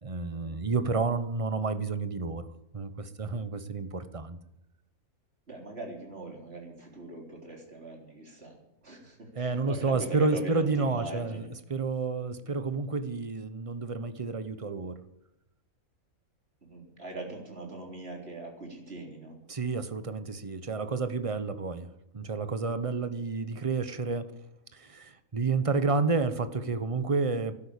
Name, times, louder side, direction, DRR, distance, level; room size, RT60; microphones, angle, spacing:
voice 1, 0.0-4.4 9.3-11.4 11.7-15.0 19.5-24.3 24.7-27.6, right 4 dB, 30° right, 11 dB, 0.9 m, -30 dB
voice 2, 5.5-11.5 16.6-19.4, right 2 dB, 45° right, 1 dB, 4.0 m, -41 dB
13.0 x 11.0 x 8.5 m, 0.88 s
omnidirectional pair, 1.5 m